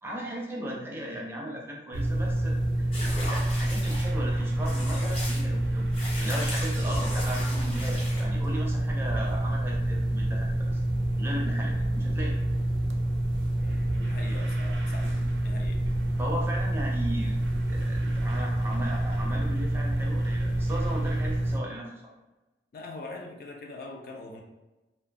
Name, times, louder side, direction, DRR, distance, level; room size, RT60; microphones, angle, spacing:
voice 1, 0.0-2.6 3.3-5.9 6.2-10.8 11.2-12.4 16.2-17.4 17.7-21.9, right 1 dB, 15° right, -2 dB, 0.4 m, -37 dB
sound 1, 1.9-21.6, right 1 dB, 90° right, 0.4 m, -27 dB
sound 2, 2.9-4.1 4.7-5.4 5.9-8.3, left 1 dB, 35° left, 0.8 m, -37 dB
voice 2, 13.6-15.1 15.4-15.8 22.7-24.4, left 2 dB, 55° left, 1 dB, 0.3 m, -42 dB
2.6 x 2.2 x 2.5 m, 1.1 s
head